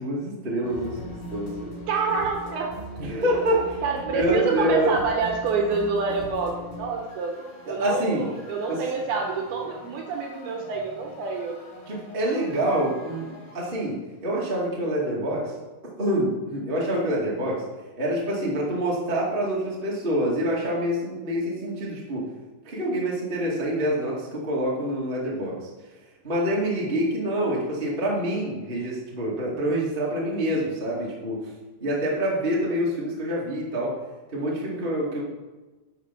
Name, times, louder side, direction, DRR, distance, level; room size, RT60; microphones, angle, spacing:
voice 1, 0.0-1.7 3.0-5.0 7.7-8.3 8.7-8.8 11.9-15.5 16.0-17.6 18.0-22.2 22.6-25.7 26.2-31.5 31.8-33.9 34.3-35.2, right 1 dB, 40° right, -5 dB, 0.7 m, -26 dB
sound 1, 0.6-13.7, equal, 60° left, 5.1 m, -42 dB
voice 2, 1.9-2.7 3.8-7.3 7.7-11.6, right 4 dB, 70° right, 1 dB, 2.6 m, -27 dB
12.0 x 4.8 x 5.9 m, 1.2 s
omnidirectional pair, 5.4 m